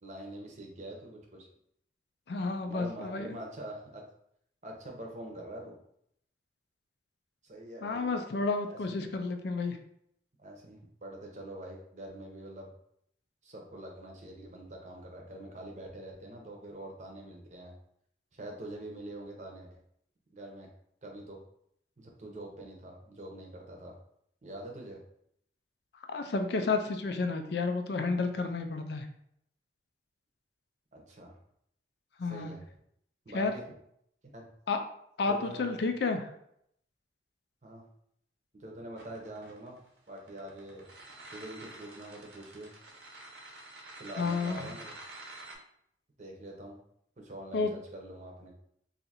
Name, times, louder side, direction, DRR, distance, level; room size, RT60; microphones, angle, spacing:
voice 1, 0.0-1.5 2.6-4.0 4.6-5.7 7.4-8.1 8.7-8.8 10.4-12.7 13.4-17.7 18.3-19.8 20.3-20.7 21.0-21.4 22.0-24.0 24.4-25.0 30.9-31.4 32.3-32.6 33.2-33.6 34.3-34.5 35.3-35.8 37.6-37.8 38.5-39.8 40.1-40.9 41.3-42.7 44.0-44.9 46.2-46.8 47.2-48.5, right 1 dB, 40° right, 0 dB, 0.7 m, -45 dB
voice 2, 2.3-3.4 7.8-9.8 26.1-29.1 32.2-32.5 33.3-33.5 34.7-34.8 35.2-36.2 44.2-44.7 47.5-47.7, left 3 dB, 70° left, 6 dB, 0.4 m, -31 dB
sound 1, 39.0-45.5, right 2 dB, 80° right, 0.8 m, -48 dB
2.7 x 2.4 x 4.1 m, 0.71 s
head